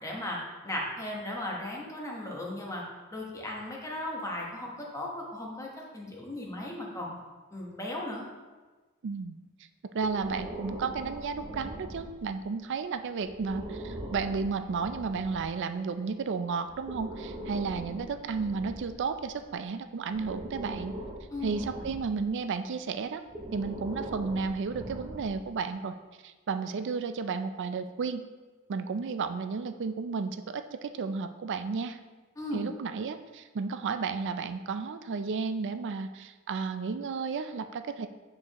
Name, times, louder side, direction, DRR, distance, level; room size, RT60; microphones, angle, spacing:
voice 1, 0.0-2.8 3.1-7.2 7.5-8.2 21.3-21.6 32.4-32.7, left 1 dB, 15° left, -2 dB, 1.1 m, -36 dB
voice 2, 9.0-9.4 9.9-21.0 21.4-23.2 23.5-26.0 26.2-28.2 28.7-32.0 32.5-38.1, right 5 dB, 55° right, 9 dB, 0.4 m, -33 dB
Breathing, 10.0-12.4 13.2-15.5 16.6-19.5 20.1-22.3 23.3-25.6, right 1 dB, 20° right, 0.7 m, -41 dB
8.5 x 4.3 x 3.0 m, 1.3 s
head